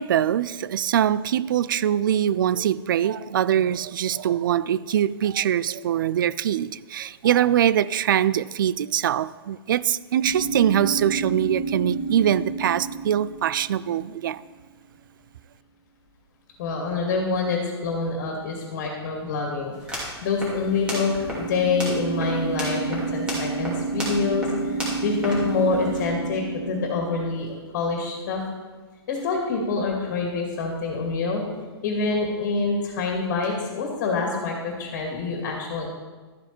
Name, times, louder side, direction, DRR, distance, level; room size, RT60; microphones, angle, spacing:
voice 1, 0.0-14.4, right 10 dB, 50° right, 0.4 m, -23 dB
sound 1, 10.2-14.3 20.4-27.3, right 4 dB, 15° left, 2.2 m, -30 dB
voice 2, 16.6-28.4 29.1-31.4 31.8-35.9, left 4 dB, 40° left, 2.3 m, -26 dB
sound 2, 19.7-26.0, equal, 5° right, 2.5 m, -35 dB
12.5 x 9.4 x 4.4 m
hypercardioid pair, 170°, 14 cm